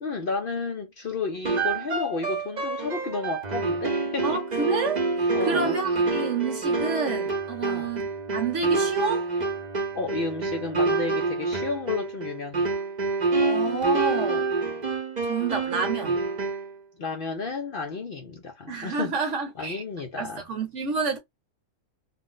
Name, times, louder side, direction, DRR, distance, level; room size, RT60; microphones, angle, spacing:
voice 1, 0.0-4.4 5.3-5.8 7.6-7.9 9.9-12.7 17.0-19.2 19.6-20.4, left 4 dB, 60° left, 0.5 m, -32 dB
sound 1, 1.4-16.8, right 3 dB, 40° right, 0.7 m, -27 dB
voice 2, 4.2-5.0 5.4-9.3 13.4-14.5 15.2-16.2 18.7-19.8 20.2-21.2, right 5 dB, 60° right, 1.0 m, -29 dB
2.5 x 2.1 x 3.7 m
omnidirectional pair, 1.5 m